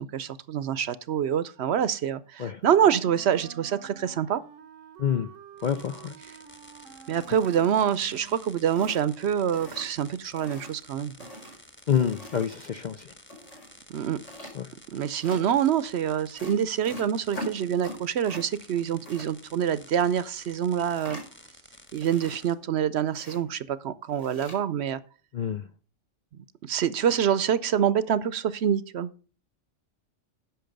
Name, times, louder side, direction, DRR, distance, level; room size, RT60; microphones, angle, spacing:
voice 1, 0.0-4.4 7.1-11.1 13.9-14.2 14.9-21.2 21.9-25.0 26.6-29.1, right 9 dB, 65° right, 0.8 m, -26 dB
Wind instrument woodwind instrument, 2.7-8.6, right 9 dB, 85° right, 1.1 m, -49 dB
voice 2, 5.6-6.1 11.9-13.1 14.5-14.7 25.3-25.7, left 8 dB, 55° left, 0.5 m, -27 dB
sound 1, 5.6-22.5, equal, 10° left, 1.3 m, -52 dB
sound 2, 7.2-7.9 8.3-8.4 8.7-9.2 9.5-10.1 10.4-10.8 11.2-12.6 13.3-13.7 14.2-14.6 15.2-15.4 16.4-18.5 18.7-19.3 20.8-21.5 21.9-22.7 23.1-23.4 24.1-24.6, left 1 dB, 70° left, 5.5 m, -42 dB
10.5 x 6.6 x 5.2 m
omnidirectional pair, 1.3 m